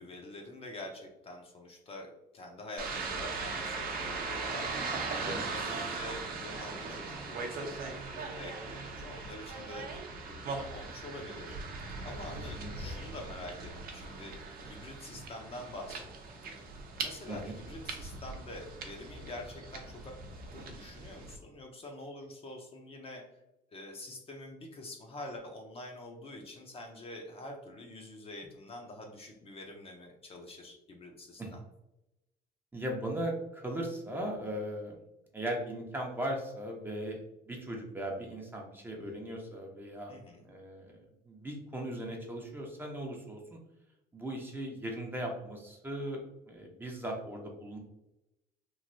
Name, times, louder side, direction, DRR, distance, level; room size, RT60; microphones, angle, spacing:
voice 1, 0.0-10.0 10.3-11.6 12.0-14.3 14.7-16.0 16.4-20.2 20.5-23.3 23.7-31.6 40.1-40.5, left 1 dB, 35° left, 1 dB, 0.6 m, -46 dB
sound 1, 2.8-21.4, right 4 dB, 60° right, 0.6 m, -39 dB
voice 2, 17.3-17.6 31.4-31.5 32.7-35.0 35.3-40.1 40.4-43.6 44.1-46.2 46.5-47.8, right 1 dB, 10° right, 0 dB, 0.7 m, -38 dB
3.1 x 2.6 x 2.6 m, 0.91 s
cardioid pair, 110°, 17 cm